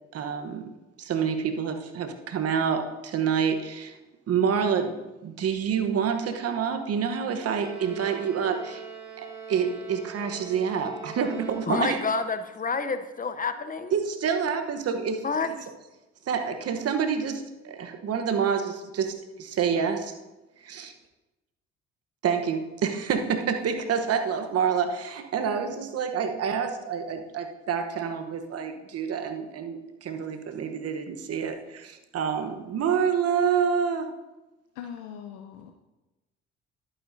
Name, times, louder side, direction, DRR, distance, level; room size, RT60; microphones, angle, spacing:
voice 1, 0.1-0.6 1.0-3.9 4.3-8.8 9.2-12.0 13.9-15.5 16.3-20.2 20.6-20.9 22.2-34.1, right 7 dB, 50° right, 6 dB, 1.1 m, -28 dB
Bowed string instrument, 7.4-12.1, right 5 dB, 85° right, 1.4 m, -43 dB
voice 2, 11.7-14.0 15.2-15.5, left 4 dB, 25° left, 11 dB, 0.8 m, -28 dB
voice 3, 34.7-35.7, left 8 dB, 75° left, 5 dB, 0.7 m, -40 dB
11.0 x 9.3 x 2.7 m, 1.1 s
hypercardioid pair, 55°, 32 cm